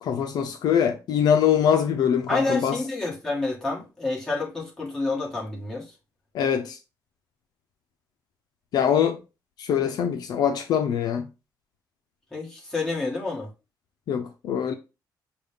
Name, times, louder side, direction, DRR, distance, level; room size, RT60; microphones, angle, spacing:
voice 1, 0.0-2.8 6.3-6.8 8.7-9.2 9.6-11.3 14.1-14.7, left 8 dB, 65° left, 0.5 m, -23 dB
voice 2, 2.3-5.9 12.3-13.5, left 3 dB, 10° left, 1.6 m, -28 dB
6.6 x 2.3 x 3.5 m
cardioid pair, 165°, 7 cm